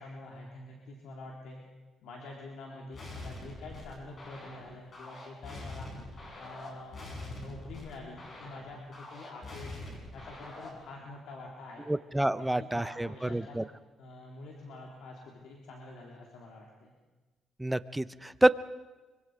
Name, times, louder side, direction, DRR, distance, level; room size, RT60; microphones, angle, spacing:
voice 1, 0.0-1.6 2.0-11.9 12.2-13.6 14.0-16.9, left 2 dB, 80° left, -1 dB, 3.7 m, -47 dB
sound 1, 2.9-10.9, left 2 dB, 40° left, 7.5 m, -44 dB
voice 2, 11.9-13.6 17.6-18.5, right 1 dB, 10° right, 15 dB, 0.8 m, -28 dB
25.5 x 24.5 x 5.1 m, 1.2 s
cardioid pair, 90°, 0 cm